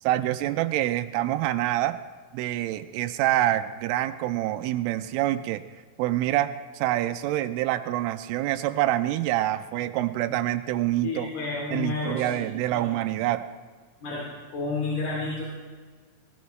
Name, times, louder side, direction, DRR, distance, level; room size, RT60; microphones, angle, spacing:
voice 1, 0.0-2.0 2.3-5.6 6.0-11.3 11.7-13.5, right 14 dB, 90° right, 9 dB, 3.1 m, -26 dB
voice 2, 11.0-12.4 12.7-12.9 14.0-14.2 14.5-15.4, left 3 dB, 55° left, -5 dB, 4.3 m, -30 dB
18.5 x 17.0 x 3.2 m, 1.5 s
omnidirectional pair, 5.6 m